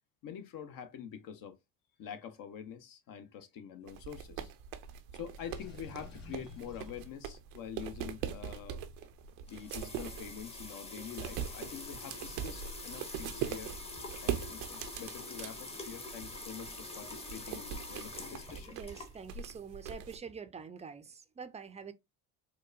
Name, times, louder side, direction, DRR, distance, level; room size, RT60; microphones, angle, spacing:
voice 1, 0.2-1.6 2.0-4.5 5.1-8.8 9.5-13.7 14.2-18.8, left 8 dB, 55° left, 0.8 m, -46 dB
sound 1, 3.9-20.2, right 9 dB, 85° right, 0.6 m, -42 dB
Water / Sink (filling or washing), 5.4-7.1, left 3 dB, 40° left, 2.3 m, -50 dB
sound 2, 9.2-19.5, left 2 dB, 15° left, 0.8 m, -46 dB
voice 2, 18.7-21.9, right 6 dB, 20° right, 0.4 m, -46 dB
4.5 x 2.1 x 2.5 m
supercardioid pair, 85°, 39 cm